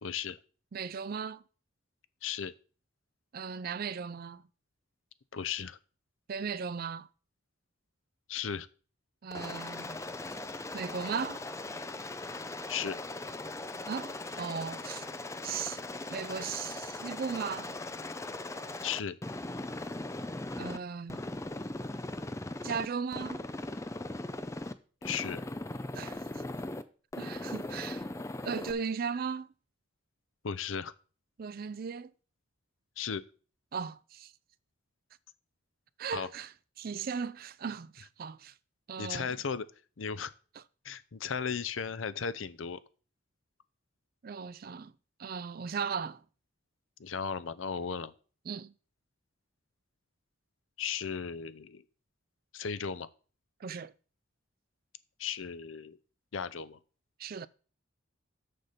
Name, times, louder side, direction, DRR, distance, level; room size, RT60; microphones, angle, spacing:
voice 1, 0.0-0.4 2.2-2.5 5.3-5.8 8.3-8.7 12.7-13.0 18.8-19.2 25.0-25.4 30.4-30.9 33.0-33.2 36.1-36.3 39.0-39.7 40.0-40.3 40.8-42.8 47.0-48.1 50.8-51.8 52.5-53.1 55.2-56.0 56.3-56.8, left 6 dB, 75° left, 0.7 m, -35 dB
voice 2, 0.7-1.4 3.3-4.4 6.3-7.1 9.2-10.0 10.7-11.4 13.9-15.1 15.4-15.8 16.1-17.7 20.6-21.2 22.6-23.5 25.9-26.4 27.2-28.1 28.4-29.5 31.4-32.1 33.7-34.3 36.0-36.5 36.8-38.5 38.9-39.3 44.2-44.9 45.2-46.2 48.5-48.7 53.6-53.9 57.2-57.5, right 6 dB, 45° right, 0.4 m, -37 dB
Aircraft, 9.3-20.8 21.1-22.9 23.1-24.7 25.0-26.8 27.1-28.7, left 2 dB, 15° left, 0.5 m, -39 dB
6.8 x 6.6 x 5.7 m
head